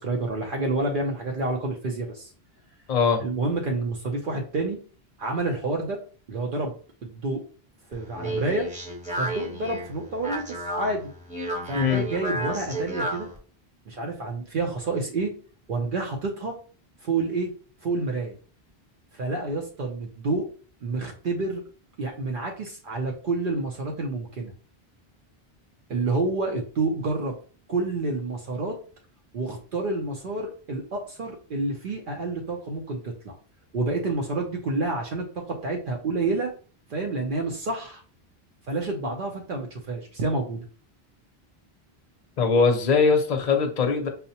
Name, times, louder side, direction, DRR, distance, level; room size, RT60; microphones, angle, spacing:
voice 1, 0.0-2.3 3.2-4.8 5.2-6.0 6.3-6.8 7.0-7.4 7.9-8.7 9.1-11.1 11.7-13.3 13.9-15.3 15.7-16.6 17.0-17.5 17.8-18.4 19.1-20.5 20.8-21.6 22.0-24.5 25.9-27.4 27.7-28.8 29.3-33.4 33.7-36.5 36.9-38.0 38.7-40.6, right 3 dB, 60° right, 1 dB, 0.7 m, -28 dB
voice 2, 2.9-3.2 11.7-12.1 42.4-44.1, left 5 dB, 50° left, 4 dB, 0.6 m, -21 dB
Speech, 7.9-13.4, equal, 10° right, 0.8 m, -32 dB
5.5 x 2.1 x 2.7 m, 0.40 s
omnidirectional pair, 1.0 m